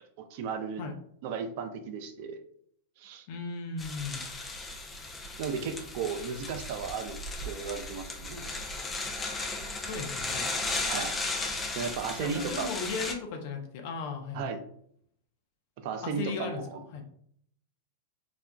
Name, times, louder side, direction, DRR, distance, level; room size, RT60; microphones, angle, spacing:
voice 1, 0.2-0.9 1.2-2.4 3.0-3.3 5.4-7.2 7.4-8.5 10.8-11.2 11.7-12.7 14.3-14.6 15.8-16.8, right 6 dB, 55° right, 8 dB, 0.5 m, -35 dB
voice 2, 3.3-4.3 9.8-10.5 12.2-14.5 16.0-16.6 16.9-17.0, left 4 dB, 55° left, 3 dB, 0.7 m, -36 dB
sound 1, 3.8-13.1, left 3 dB, 20° left, 0.5 m, -35 dB
4.1 x 2.3 x 2.2 m, 0.66 s
hypercardioid pair, 100°, 0 cm